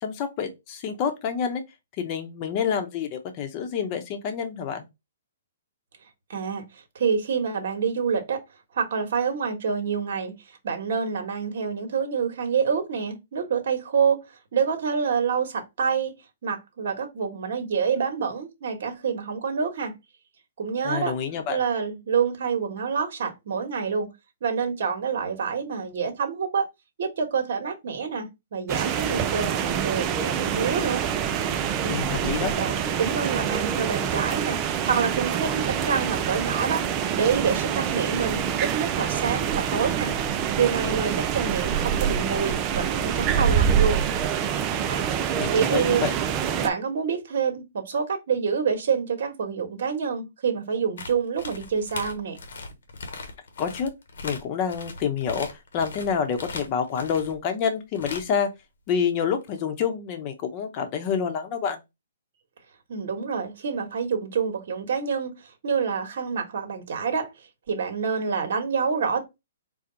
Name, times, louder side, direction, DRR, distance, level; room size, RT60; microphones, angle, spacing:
voice 1, 0.0-1.6 2.0-4.8 20.8-21.6 31.9-32.5 45.4-46.1 53.6-53.9 54.2-58.5 58.9-61.8, left 7 dB, 35° left, 0.9 m, -28 dB
voice 2, 6.3-8.4 8.7-10.3 10.6-14.2 14.5-16.2 16.4-19.9 20.6-21.1 21.5-24.1 24.4-26.6 27.0-31.1 31.8-32.1 32.5-36.9 37.1-40.1 40.5-44.0 44.9-45.1 45.5-46.1 46.6-52.4 62.9-65.3 65.6-67.3 67.7-69.3, right 6 dB, 60° right, 1.3 m, -27 dB
sound 1, 28.7-46.7, right 8 dB, 25° right, 0.4 m, -26 dB
sound 2, 51.0-57.4 57.9-58.4 59.5-59.6, left 3 dB, 75° left, 1.1 m, -39 dB
4.4 x 2.3 x 3.9 m
hypercardioid pair, 145°, 0 cm